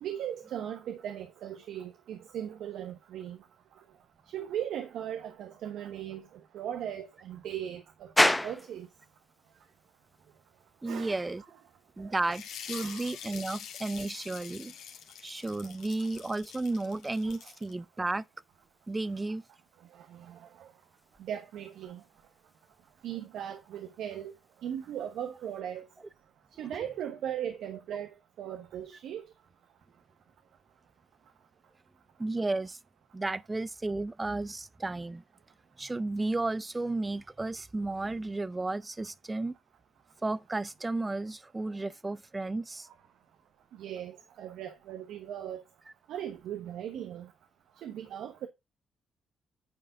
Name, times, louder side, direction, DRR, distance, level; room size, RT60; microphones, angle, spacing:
voice 1, 0.0-3.4 4.3-8.9 10.8-11.2 12.0-12.2 12.7-13.1 19.9-20.7 21.2-22.0 23.0-24.3 24.6-25.8 26.6-29.3 42.9-43.0 43.7-45.6 46.1-47.3 47.8-48.5, right 10 dB, 80° right, 1.1 m, -38 dB
sound 1, 8.2-25.6, left 1 dB, 5° left, 0.8 m, -38 dB
voice 2, 10.8-11.4 12.0-14.7 15.2-18.2 18.9-19.4 32.2-32.8 33.1-35.2 35.8-39.6 40.2-42.9, right 2 dB, 20° right, 0.4 m, -33 dB
sound 2, 12.2-17.7, left 8 dB, 80° left, 1.8 m, -45 dB
9.6 x 4.6 x 4.8 m
cardioid pair, 90°, 0 cm